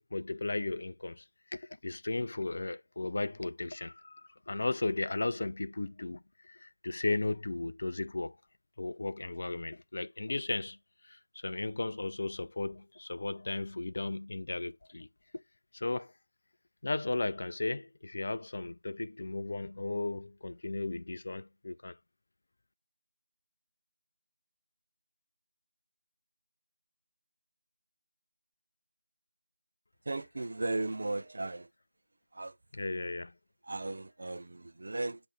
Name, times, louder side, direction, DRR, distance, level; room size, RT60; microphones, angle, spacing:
voice 1, 0.1-1.2 1.5-8.3 8.8-10.8 11.0-15.1 15.7-16.1 16.8-22.0 32.7-33.3, left 2 dB, 45° left, 0.3 m, -35 dB
voice 2, 30.1-31.7 32.3-32.5 33.7-35.2, right 2 dB, 45° right, 0.4 m, -36 dB
7.4 x 2.6 x 5.8 m
figure-of-eight pair, 165°, 0 cm